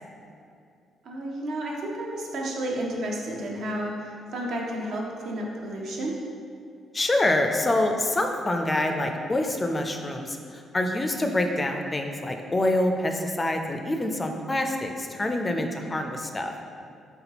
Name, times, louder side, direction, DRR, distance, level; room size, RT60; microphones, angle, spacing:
voice 1, 1.0-6.2, right 1 dB, 70° right, -1 dB, 0.6 m, -31 dB
voice 2, 6.9-16.5, left 1 dB, 25° left, 4 dB, 0.3 m, -26 dB
4.1 x 3.7 x 2.9 m, 2.4 s
cardioid pair, 90°, 0 cm